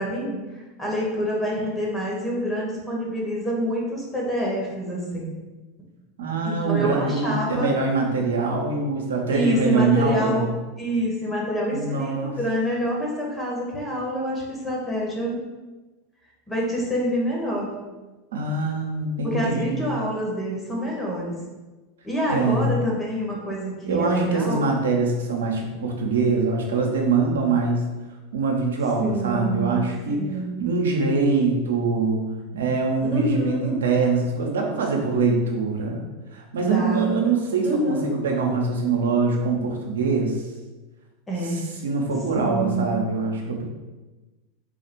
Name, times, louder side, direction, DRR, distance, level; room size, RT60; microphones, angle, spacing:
voice 1, 0.0-5.3 6.4-7.7 9.3-10.5 10.8-15.4 16.5-17.7 19.2-21.3 22.0-24.6 29.0-29.7 30.1-30.7 32.5-32.6 33.0-33.8 36.6-37.1 37.6-38.1 41.3-41.6 42.3-42.9, equal, 15° left, -3 dB, 1.5 m, -27 dB
voice 2, 6.2-10.5 11.7-12.3 18.3-19.9 22.3-22.7 23.8-27.9 28.3-30.2 30.6-32.2 32.5-36.0 36.3-40.5 41.5-43.6, right 4 dB, 80° right, 1 dB, 0.8 m, -23 dB
3.9 x 2.4 x 4.5 m, 1.2 s
hypercardioid pair, 90°, 0 cm